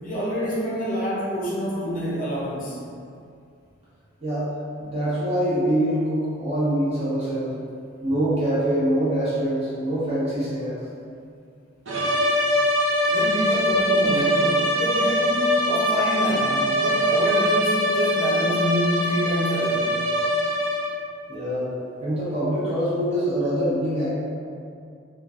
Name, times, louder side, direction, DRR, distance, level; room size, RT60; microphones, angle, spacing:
voice 1, 0.0-2.8 13.1-19.9, equal, 45° left, -6 dB, 0.5 m, -27 dB
voice 2, 4.2-4.5 4.8-7.5 8.0-10.7 13.5-13.6 21.3-21.7 22.0-24.1, right 1 dB, 35° right, -11 dB, 1.0 m, -24 dB
sound 1, 11.9-21.1, equal, 70° right, 0.6 m, -22 dB
3.1 x 2.2 x 2.4 m, 2.3 s
head